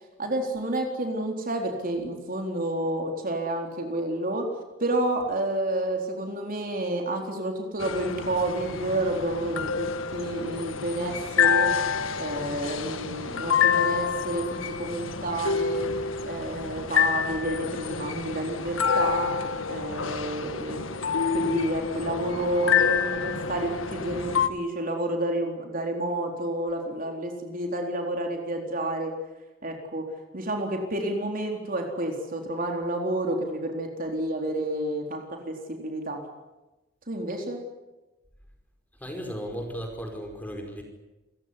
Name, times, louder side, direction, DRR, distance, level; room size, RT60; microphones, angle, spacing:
voice 1, 0.2-4.5 4.8-11.7 12.2-15.9 16.3-19.3 19.7-20.9 21.3-29.1 29.6-30.1 30.3-36.2 37.1-37.6, right 1 dB, 45° right, 3 dB, 4.0 m, -30 dB
sound 1, 7.8-24.5, left 6 dB, 85° left, 1.6 m, -28 dB
voice 2, 39.0-40.8, equal, 10° left, 3 dB, 5.1 m, -35 dB
28.0 x 16.5 x 10.0 m, 1.0 s
head